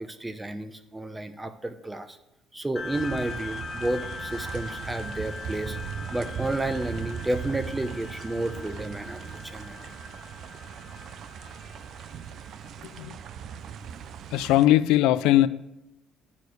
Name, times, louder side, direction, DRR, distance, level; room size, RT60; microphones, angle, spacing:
voice 1, 0.0-2.2 2.5-5.8 6.1-9.9 13.9-14.1, right 2 dB, 15° right, 11 dB, 0.8 m, -31 dB
sound 1, 2.8-13.6, left 4 dB, 35° left, 0.8 m, -41 dB
sound 2, 2.9-14.7, right 7 dB, 60° right, 0.4 m, -39 dB
voice 2, 14.3-15.5, left 14 dB, 80° left, 15 dB, 0.3 m, -20 dB
9.7 x 4.5 x 6.6 m, 0.90 s
supercardioid pair, 85°, 0 cm